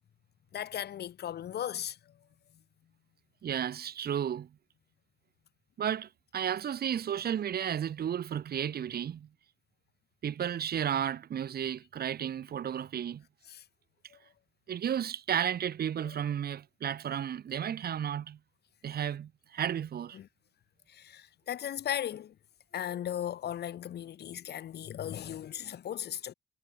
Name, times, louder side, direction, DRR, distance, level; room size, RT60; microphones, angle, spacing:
voice 1, 0.5-2.0 12.2-12.3 13.5-13.6 14.1-14.2 20.1-20.3 20.9-22.3 22.7-26.3, left 10 dB, 55° left, 0.8 m, -37 dB
voice 2, 3.4-4.5 5.8-9.3 10.2-13.2 14.7-18.4 18.8-20.2, right 9 dB, 50° right, 1.0 m, -33 dB
cardioid pair, 90°, 20 cm